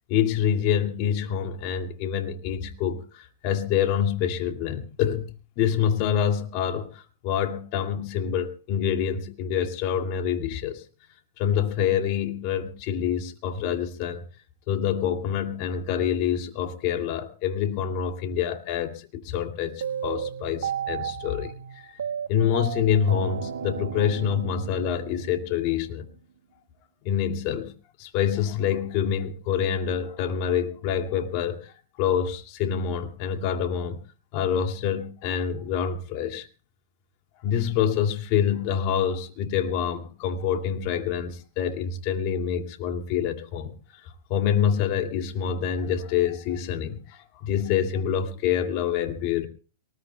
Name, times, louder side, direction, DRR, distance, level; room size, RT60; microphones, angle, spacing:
voice 1, 0.1-5.3 5.6-10.8 11.4-14.2 14.7-21.9 22.3-26.1 27.0-27.7 28.0-31.7 32.0-34.0 34.3-36.5 37.4-43.7 44.3-49.5, left 8 dB, 50° left, 2.4 m, -26 dB
sound 1, 19.8-26.0, right 8 dB, 90° right, 1.3 m, -34 dB
23.0 x 20.0 x 2.3 m
hypercardioid pair, 130°, 0 cm